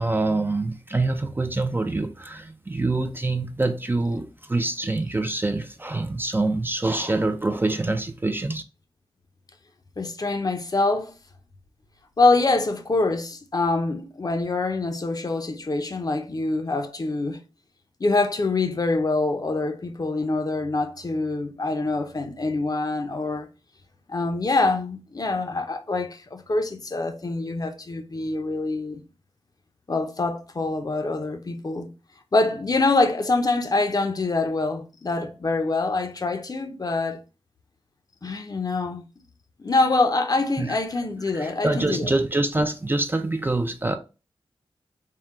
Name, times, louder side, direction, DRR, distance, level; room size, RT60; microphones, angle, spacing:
voice 1, 0.0-8.6 40.6-40.8 41.3-44.0, right 2 dB, 20° right, 0.4 m, -25 dB
voice 2, 10.0-11.1 12.2-17.4 18.0-23.5 24.1-29.0 29.9-31.9 32.3-37.2 38.2-39.1 39.6-42.2, left 3 dB, 40° left, 0.6 m, -25 dB
3.7 x 2.1 x 4.2 m
wide cardioid pair, 90°, 10 cm